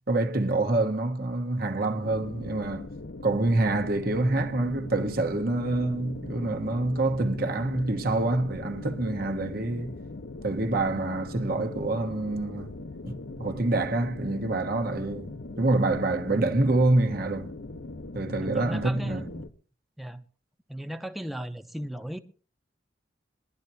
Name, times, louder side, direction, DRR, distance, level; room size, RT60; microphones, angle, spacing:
voice 1, 0.0-2.9 3.2-9.9 10.4-12.8 13.0-17.5 18.1-19.3, right 2 dB, 55° right, 1.2 m, -26 dB
sound 1, 2.0-19.5, left 2 dB, 70° left, 0.9 m, -40 dB
voice 2, 18.4-19.4 20.0-20.2 20.7-22.2, equal, ahead, 0.7 m, -36 dB
21.0 x 12.0 x 2.8 m
head